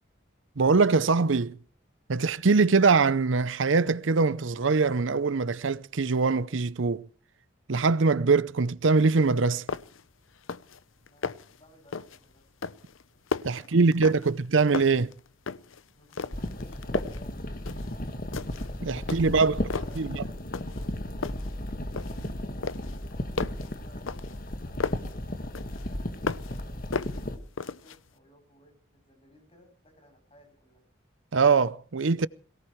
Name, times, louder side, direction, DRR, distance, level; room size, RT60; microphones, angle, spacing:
voice 1, 0.6-1.6 2.1-7.1 7.7-9.6 13.4-15.1 18.8-19.5 20.0-20.2 31.3-32.3, right 4 dB, 75° right, 0.7 m, -23 dB
sound 1, 9.2-9.3 9.7-10.1 10.4-10.8 11.1-11.6 11.9-12.2 12.6-14.5 14.7-15.8 16.1-17.3 17.7-17.9 18.3-18.7 19.1-20.0 20.5-20.9 21.2-22.3 22.6-25.1 25.5-26.6 26.9-28.0, left 4 dB, 90° left, 0.8 m, -35 dB
voice 2, 11.1-12.5 13.5-14.4 15.9-17.4 19.0-20.9 21.3-22.3 23.4-24.2 24.6-26.9 27.6-30.8, equal, 30° left, 7.9 m, -58 dB
sound 2, 16.3-27.4, left 1 dB, 45° left, 1.8 m, -34 dB
22.5 x 18.5 x 3.2 m
head